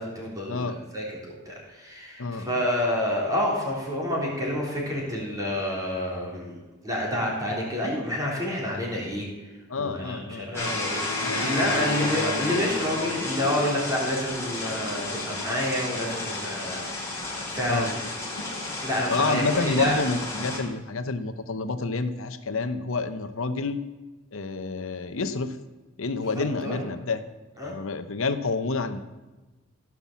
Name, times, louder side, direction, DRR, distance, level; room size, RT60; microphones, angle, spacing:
voice 1, 0.0-9.3 9.8-18.0 18.8-20.1 20.4-20.5 26.2-26.8 27.6-27.7, left 1 dB, 15° right, -3 dB, 3.5 m, -29 dB
voice 2, 2.2-2.6 9.7-10.7 11.2-11.5 17.7-17.9 19.1-23.8 24.3-25.6 26.0-27.2 27.6-29.0, left 3 dB, 65° left, 10 dB, 0.9 m, -29 dB
sound 1, 10.5-20.6, left 2 dB, 10° left, 3.5 m, -31 dB
15.5 x 6.0 x 7.3 m, 1.2 s
head